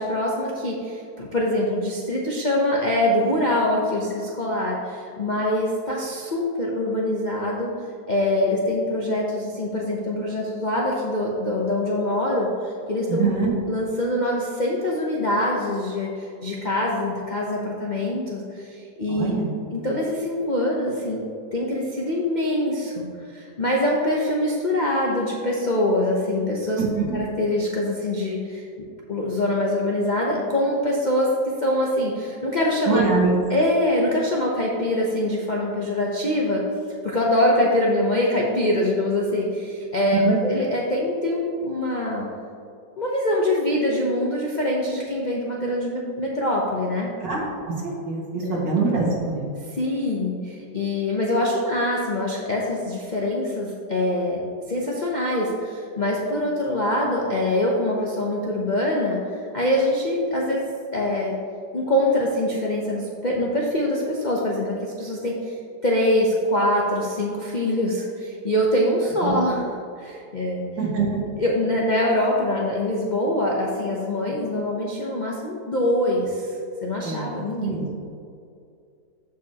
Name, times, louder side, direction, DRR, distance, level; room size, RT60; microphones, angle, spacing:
voice 1, 0.0-7.7 8.1-13.3 13.7-19.4 19.7-21.2 21.5-23.1 23.3-26.8 27.1-28.7 29.1-33.0 33.5-36.7 37.0-42.3 43.0-47.1 48.4-48.6 49.7-54.4 54.7-61.4 61.7-65.6 65.8-69.7 70.0-70.7 71.4-76.5 76.8-77.7, left 1 dB, 40° left, -3 dB, 0.6 m, -24 dB
voice 2, 13.1-13.5 19.1-19.5 26.8-27.0 32.9-33.3 40.1-40.4 47.2-49.5 69.2-69.4 70.8-71.2 77.0-77.9, right 4 dB, 80° right, -4 dB, 2.5 m, -24 dB
14.5 x 5.0 x 2.9 m, 2.4 s
omnidirectional pair, 1.9 m